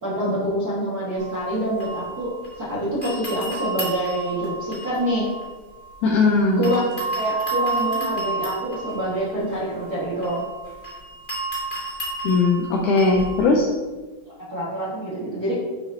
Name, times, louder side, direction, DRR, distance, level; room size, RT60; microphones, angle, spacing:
voice 1, 0.0-2.3 2.6-5.2 6.6-6.8 7.1-10.4 14.5-15.6, equal, 55° right, -8 dB, 1.0 m, -26 dB
sound 1, 1.2-2.7 3.0-6.2 6.6-13.4, right 3 dB, 15° left, 1.9 m, -31 dB
voice 2, 6.0-6.7 12.2-13.7, left 3 dB, 90° left, 0 dB, 1.8 m, -19 dB
11.0 x 5.0 x 2.7 m, 1.3 s
omnidirectional pair, 4.4 m